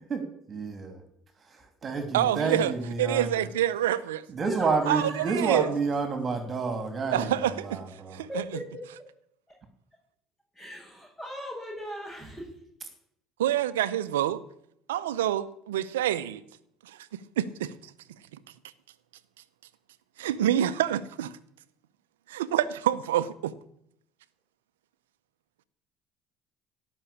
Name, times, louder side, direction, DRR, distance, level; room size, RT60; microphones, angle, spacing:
voice 1, 0.5-1.0 1.5-3.5 4.3-8.2, right 4 dB, 40° right, 2.7 m, -29 dB
voice 2, 2.1-2.7 3.0-4.2 4.9-5.7 7.1-7.8 8.1-8.4 13.4-14.4 14.9-16.4 16.9-17.0 17.4-17.7 20.2-21.3 22.3-23.5, right 11 dB, 90° right, 0.7 m, -27 dB
voice 3, 4.4-5.5 8.3-8.8 10.5-12.5, equal, 15° left, 7.0 m, -39 dB
16.5 x 6.2 x 8.5 m
hypercardioid pair, 70°, 0 cm